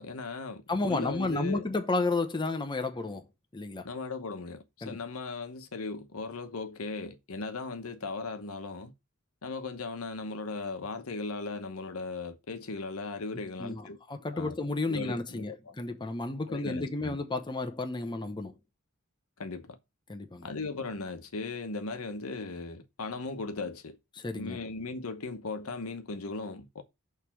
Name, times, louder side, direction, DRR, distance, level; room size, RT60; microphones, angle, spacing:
voice 1, 0.0-1.7 3.8-8.9 9.4-14.0 14.3-14.6 14.9-15.7 16.5-17.2 19.4-19.8 20.4-24.0 24.3-26.8, left 3 dB, 80° left, 1.0 m, -37 dB
voice 2, 0.7-3.2 3.5-3.9 4.8-5.0 13.6-18.6 20.1-20.5 24.2-24.6, left 2 dB, 20° left, 0.9 m, -32 dB
6.6 x 3.4 x 5.9 m
head